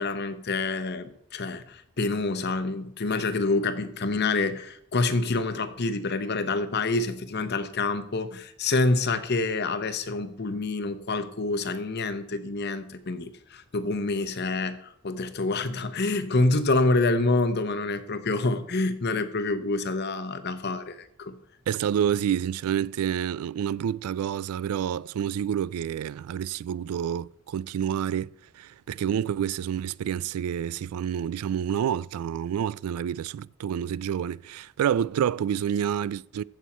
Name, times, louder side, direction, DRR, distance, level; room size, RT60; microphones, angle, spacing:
voice 1, 0.0-14.8 15.0-21.4, left 3 dB, 50° left, 0.9 m, -27 dB
voice 2, 21.7-36.4, right 9 dB, 90° right, 0.3 m, -28 dB
15.0 x 6.4 x 4.3 m
head